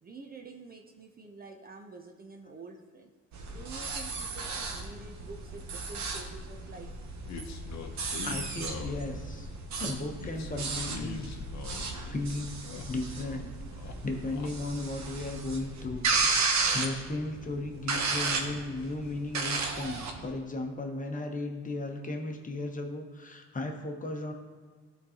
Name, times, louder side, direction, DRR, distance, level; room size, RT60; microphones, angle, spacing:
voice 1, 0.0-3.1 3.5-6.9, right 4 dB, 30° right, 3 dB, 0.6 m, -48 dB
sound 1, 3.3-20.3, right 4 dB, 65° right, 0.9 m, -34 dB
sound 2, 7.2-9.4 10.2-12.2 12.5-13.4 13.7-14.5, left 4 dB, 65° left, 0.8 m, -42 dB
voice 2, 8.2-9.5 9.8-11.3 12.0-12.5 12.8-13.5 13.8-24.3, left 2 dB, 25° left, 3 dB, 1.0 m, -36 dB
11.5 x 3.9 x 2.9 m, 1.5 s
cardioid pair, 90°, 30 cm